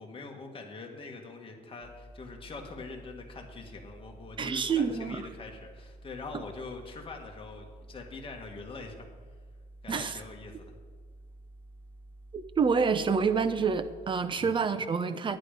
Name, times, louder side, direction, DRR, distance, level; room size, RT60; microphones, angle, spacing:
voice 1, 0.0-9.1 9.8-10.7 14.4-14.5, left 3 dB, 30° left, 2 dB, 2.1 m, -44 dB
sound 1, 1.8-14.1, right 1 dB, 10° left, 1.3 m, -51 dB
voice 2, 4.4-5.3 9.9-10.2 12.3-15.4, right 5 dB, 30° right, 11 dB, 0.8 m, -28 dB
11.0 x 10.5 x 5.2 m, 1.5 s
cardioid pair, 110°, 17 cm